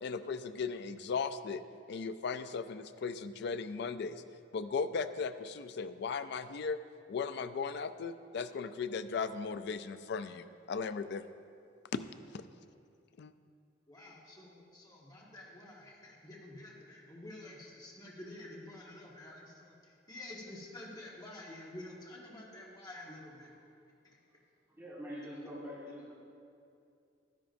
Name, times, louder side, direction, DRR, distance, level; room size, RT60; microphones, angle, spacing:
voice 1, 0.0-1.6 1.9-4.2 4.5-6.8 7.1-11.2 11.9-12.0 12.3-12.4 13.2-13.3, left 5 dB, 65° left, 11 dB, 0.4 m, -37 dB
voice 2, 13.9-23.5 24.0-24.2, left 1 dB, 20° left, -4 dB, 1.5 m, -49 dB
voice 3, 24.7-26.1, equal, 15° right, -8 dB, 1.6 m, -44 dB
12.0 x 10.5 x 2.6 m, 2.5 s
head